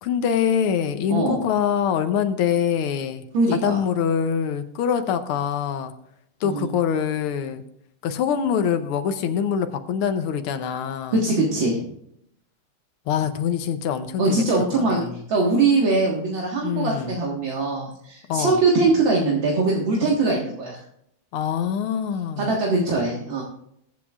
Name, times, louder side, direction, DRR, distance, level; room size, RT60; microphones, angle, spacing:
voice 1, 0.0-3.2 3.5-5.9 6.4-7.6 8.0-11.2 13.1-14.4 14.7-15.2 16.6-17.2 18.3-18.6 21.3-22.5, left 8 dB, 85° left, 8 dB, 1.7 m, -24 dB
voice 2, 1.1-1.4 3.3-3.8 6.4-6.7 11.1-11.9 14.2-20.8 22.4-23.4, right 3 dB, 65° right, -3 dB, 2.4 m, -22 dB
22.0 x 8.1 x 2.4 m, 0.72 s
omnidirectional pair, 2.4 m